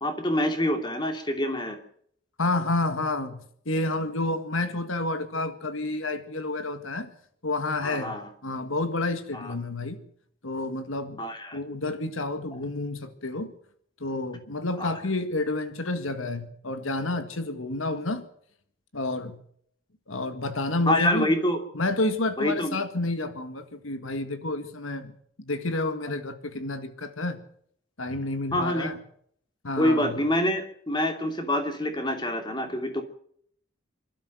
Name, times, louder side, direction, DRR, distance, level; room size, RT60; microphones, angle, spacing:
voice 1, 0.0-1.8 7.8-8.3 9.3-9.5 11.2-11.6 14.8-14.9 20.9-21.6 22.4-22.8 28.5-28.9 29.8-33.0, left 1 dB, 20° left, 2.7 m, -26 dB
voice 2, 2.4-7.1 7.4-10.0 10.4-11.2 11.5-13.5 14.0-18.3 18.9-19.4 20.1-21.3 21.7-25.1 25.4-27.4 28.0-29.0 29.6-30.2, left 2 dB, 85° left, 1.8 m, -30 dB
26.5 x 12.5 x 7.8 m
head